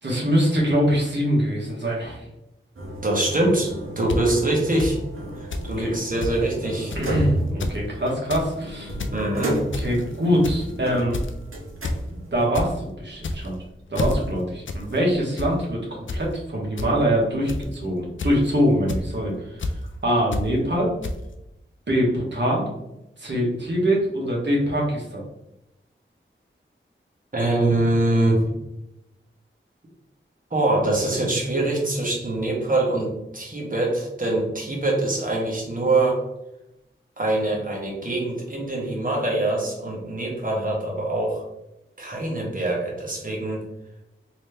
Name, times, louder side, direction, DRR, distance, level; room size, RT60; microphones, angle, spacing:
voice 1, 0.0-2.2 4.0-4.1 5.8-5.9 6.9-8.9 9.8-11.2 12.1-13.5 13.9-19.7 20.0-20.9 21.9-22.7 23.2-25.2, equal, 55° right, -3 dB, 1.3 m, -23 dB
sound 1, 2.8-12.4, right 1 dB, 75° right, 1.0 m, -33 dB
voice 2, 3.0-3.7 4.0-5.0 5.4-6.9 9.1-9.6 27.3-28.4 30.5-36.2 37.2-41.4 42.0-43.6, right 2 dB, 40° right, -3 dB, 1.3 m, -24 dB
sound 2, 4.1-4.2 4.8-4.9 5.5-5.7 5.9-6.0 6.2-6.4 6.9-7.1 7.5-7.8 8.1-8.5 8.8-9.2 9.7-10.0 10.4-10.7 11.1-11.4 11.8-12.0 12.3-12.7 13.2-13.6 13.9-14.2 14.7-14.8 15.1-15.5 16.1-16.2 16.8-16.9 17.5-17.7 18.2-18.5 18.9-19.0 19.6-19.7 20.3-20.5 21.0-21.1, left 2 dB, 65° left, 0.5 m, -28 dB
3.1 x 2.9 x 3.3 m, 0.89 s
wide cardioid pair, 50°, 21 cm